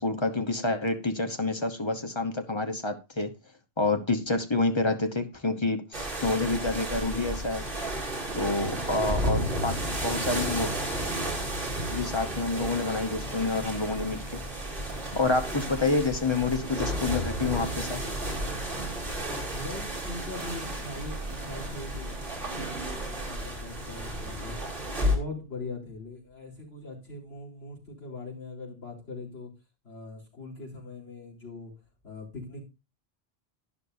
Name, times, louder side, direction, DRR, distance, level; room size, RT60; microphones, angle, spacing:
voice 1, 0.0-3.3 3.8-7.7 8.4-10.7 11.9-14.4 15.1-18.0, left 3 dB, 30° left, 7 dB, 1.0 m, -28 dB
sound 1, 5.9-25.2, equal, 55° right, 2.9 m, -33 dB
sound 2, 12.6-26.5, right 2 dB, 25° right, 1.3 m, -46 dB
voice 2, 19.1-24.6 25.0-29.5 29.8-31.7 32.0-32.6, left 2 dB, 80° left, -5 dB, 4.3 m, -41 dB
11.5 x 10.5 x 2.7 m, 0.27 s
omnidirectional pair, 1.0 m